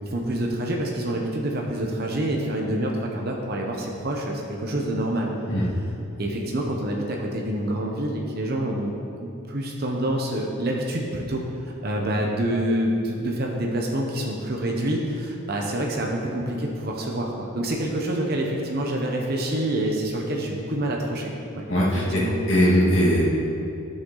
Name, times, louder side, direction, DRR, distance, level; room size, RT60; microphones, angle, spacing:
voice 1, 0.0-5.3 6.2-21.7 21.9-22.4, right 1 dB, 45° right, -1 dB, 0.9 m, -27 dB
voice 2, 21.7-22.2 22.5-23.2, equal, 60° left, -6 dB, 2.0 m, -20 dB
10.5 x 6.4 x 3.9 m, 2.7 s
head